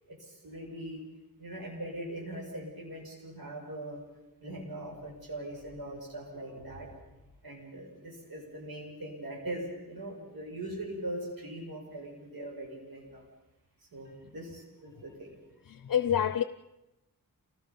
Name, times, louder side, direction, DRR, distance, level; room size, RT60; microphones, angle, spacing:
voice 1, 0.2-1.0 1.4-4.0 4.4-7.2 7.4-13.2 13.9-15.4, right 1 dB, 80° right, 6.9 m, -41 dB
voice 2, 15.7-16.4, left 9 dB, 65° left, 0.7 m, -28 dB
28.5 x 18.5 x 5.4 m
wide cardioid pair, 80°, 36 cm